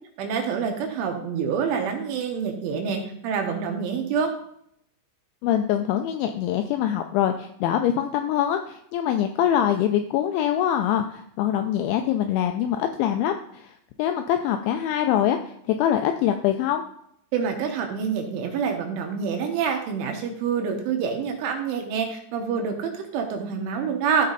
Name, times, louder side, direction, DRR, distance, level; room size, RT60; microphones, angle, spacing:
voice 1, 0.2-4.3 17.3-24.3, right 6 dB, 75° right, 3 dB, 3.5 m, -27 dB
voice 2, 5.4-13.7 14.0-15.5 15.8-16.8, left 10 dB, 85° left, 6 dB, 2.7 m, -24 dB
14.0 x 5.3 x 4.0 m, 0.71 s
omnidirectional pair, 5.9 m